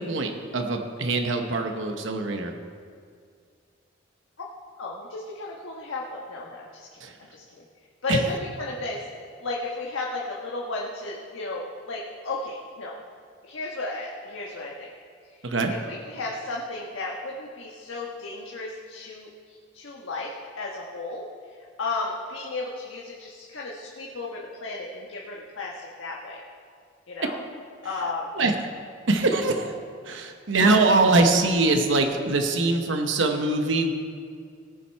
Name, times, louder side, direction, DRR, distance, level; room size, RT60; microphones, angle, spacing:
voice 1, 0.0-2.5 7.0-7.1 8.1-8.2 15.4-15.7 28.4-28.5 29.1-29.7 30.1-33.9, right 3 dB, 70° right, 4 dB, 0.9 m, -23 dB
voice 2, 4.8-7.0 7.3-7.6 8.0-9.0 9.4-13.0 13.4-14.9 15.3-26.4 27.1-27.4 27.8-28.3, left 2 dB, 90° left, -3 dB, 1.3 m, -34 dB
18.5 x 7.3 x 4.6 m, 2.2 s
head